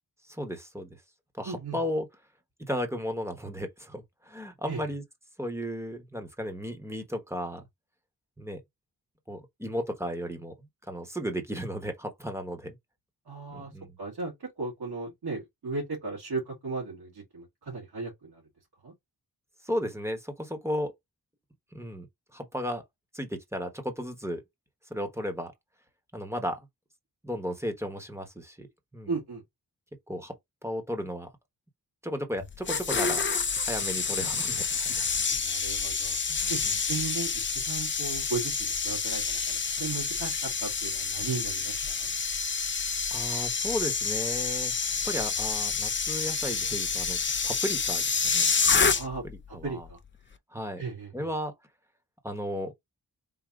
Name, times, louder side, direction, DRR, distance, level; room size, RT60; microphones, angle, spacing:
voice 1, 0.3-0.9 1.4-2.1 2.7-5.0 5.4-7.6 8.4-8.6 9.3-10.5 10.9-12.7 13.5-14.0 19.6-20.9 21.7-22.1 22.3-22.8 23.1-24.4 24.9-25.5 26.1-26.7 27.2-28.7 28.9-29.1 30.1-30.3 30.6-31.3 32.0-33.2 33.6-35.0 36.3-36.4 43.1-44.7 45.0-48.8 49.5-49.8 50.5-50.8 51.1-51.5 52.2-52.7, equal, 5° right, 1.1 m, -34 dB
voice 2, 1.5-1.8 4.7-4.8 13.3-13.7 14.0-18.4 18.8-18.9 29.1-29.4 35.4-36.2 36.5-42.1 48.9-50.0 50.8-51.3, right 4 dB, 80° right, 2.1 m, -36 dB
sound 1, 32.4-49.3 49.6-49.9, left 5 dB, 30° left, 0.6 m, -28 dB
3.9 x 2.7 x 4.6 m
wide cardioid pair, 90°, 38 cm